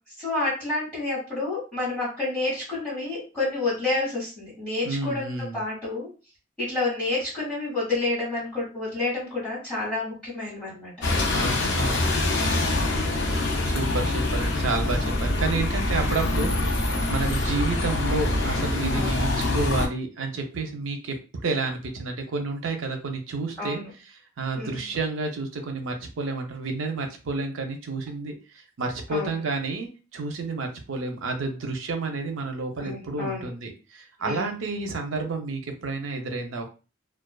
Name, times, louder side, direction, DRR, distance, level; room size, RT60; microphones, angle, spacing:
voice 1, 0.2-6.1 6.6-10.9 12.3-12.7 14.9-15.1 16.0-16.1 18.9-19.2 23.6-23.9 24.5-24.8 29.1-29.4 32.8-33.5 34.2-34.5, left 2 dB, 5° left, -10 dB, 1.3 m, -29 dB
voice 2, 4.8-5.6 11.3-12.1 13.6-21.2 21.4-23.8 24.4-36.7, right 3 dB, 75° right, 4 dB, 0.5 m, -30 dB
Bus, 11.0-19.9, left 2 dB, 60° left, 0.6 m, -25 dB
2.4 x 2.3 x 2.2 m, 0.33 s
head